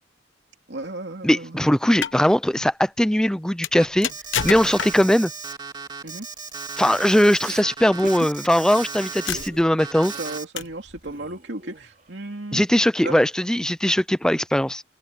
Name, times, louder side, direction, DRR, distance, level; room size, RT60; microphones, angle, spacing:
voice 1, 0.7-1.7 6.0-6.3 10.0-12.6 13.0-13.2, right 2 dB, 70° right, 2.6 m, -34 dB
voice 2, 1.2-4.1 4.4-5.3 6.8-10.1 12.5-14.8, equal, 5° left, 0.5 m, -20 dB
sound 1, 1.8-2.2 3.6-5.2 6.5-6.7 8.0-8.1 8.7-8.8 9.3-9.8 10.6-10.9, left 8 dB, 90° left, 1.1 m, -29 dB
Alarm, 3.8-9.5 9.8-10.4, right 5 dB, 25° right, 3.1 m, -36 dB
Respiratory sounds, 7.4-7.7 8.0-8.3 8.6-8.9 9.3-10.4 10.7-12.1, right 3 dB, 45° right, 3.6 m, -40 dB
head